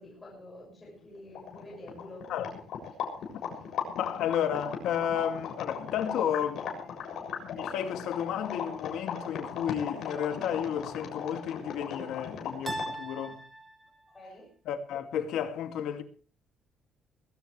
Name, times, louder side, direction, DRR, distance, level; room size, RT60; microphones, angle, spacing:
voice 1, 0.0-2.2 14.1-14.5, left 1 dB, 15° left, 6.6 m, -48 dB
sound 1, 1.0-1.1 1.3-13.0, left 7 dB, 55° left, 7.1 m, -38 dB
voice 2, 4.0-6.8 7.4-13.4 14.7-16.0, left 9 dB, 70° left, 2.4 m, -32 dB
sound 2, 10.1-10.8 12.7-14.1, right 1 dB, 15° right, 3.7 m, -40 dB
21.0 x 17.5 x 3.3 m
cardioid pair, 175°, 0 cm